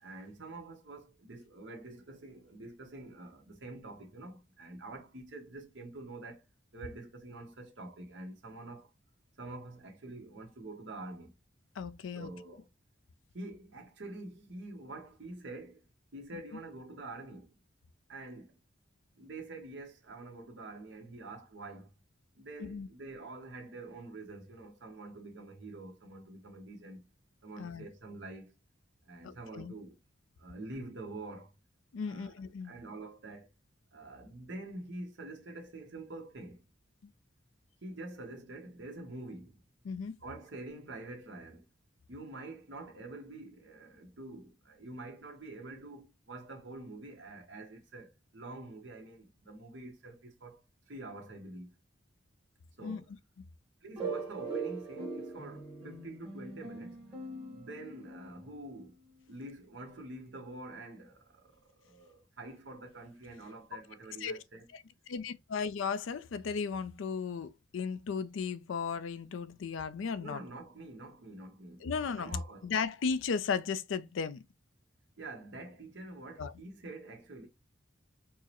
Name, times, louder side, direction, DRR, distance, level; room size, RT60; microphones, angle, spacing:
voice 1, 0.0-6.5 6.7-8.9 9.4-11.3 12.1-12.7 13.3-15.8 16.1-17.6 18.1-18.6 19.1-21.9 22.3-27.1 27.4-28.6 29.1-30.0 30.4-31.5 32.0-32.3 32.6-33.5 33.9-36.7 37.8-39.6 40.2-41.7 42.1-50.6 50.9-51.8 52.8-53.1 53.8-57.0 57.5-59.0 59.3-64.7 70.2-71.9 72.2-72.7 75.2-77.5, right 2 dB, 65° right, 0.9 m, -46 dB
voice 2, 11.8-12.3 22.6-22.9 27.6-27.9 29.2-29.7 31.9-32.7 37.0-37.1 39.8-40.1 52.8-53.0 63.7-63.8 64.2-64.4 64.7-70.4 71.8-72.3 72.6-74.4 76.4-76.5, left 5 dB, 70° left, 0.4 m, -35 dB
sound 1, 54.0-58.5, right 4 dB, 25° right, 1.4 m, -41 dB
4.5 x 2.0 x 2.9 m
head